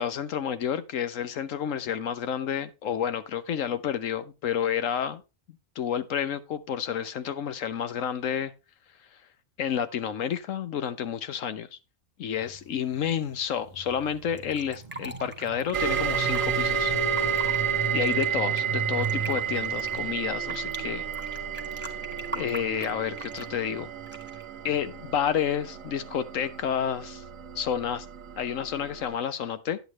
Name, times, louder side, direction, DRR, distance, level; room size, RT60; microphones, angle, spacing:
voice 1, 0.0-5.2 5.8-8.5 9.6-11.7 12.2-16.9 17.9-21.1 22.3-23.9 24.6-27.2 27.5-28.1 28.4-29.8, left 8 dB, 75° left, 1.2 m, -30 dB
sound 1, 12.3-20.1, right 3 dB, 35° right, 1.0 m, -38 dB
Fill (with liquid), 14.4-16.4 17.0-17.6 18.0-20.8 21.1-23.6 24.1-24.4, right 2 dB, 10° right, 1.0 m, -41 dB
sound 2, 15.7-29.2, right 8 dB, 75° right, 1.5 m, -31 dB
10.5 x 8.2 x 3.1 m
omnidirectional pair, 1.4 m